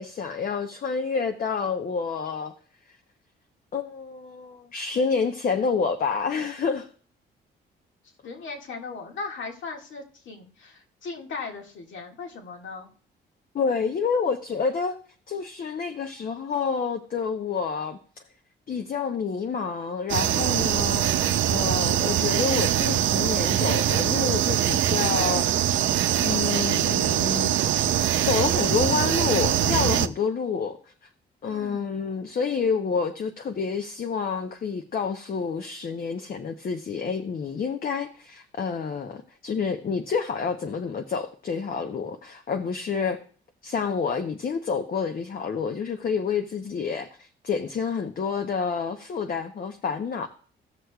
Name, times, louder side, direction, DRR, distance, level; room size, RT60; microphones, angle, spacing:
voice 1, 0.0-2.5 3.7-6.9 13.5-15.0 15.3-18.0 18.7-21.1 21.5-25.5 26.2-27.6 28.2-30.8 31.4-43.2 43.6-50.3, left 5 dB, 45° left, 0.9 m, -28 dB
voice 2, 8.2-12.9 31.4-32.1, left 4 dB, 70° left, 2.0 m, -38 dB
sound 1, 20.1-30.1, right 11 dB, 75° right, 0.6 m, -23 dB
17.0 x 6.4 x 2.3 m
cardioid pair, 90°, 20 cm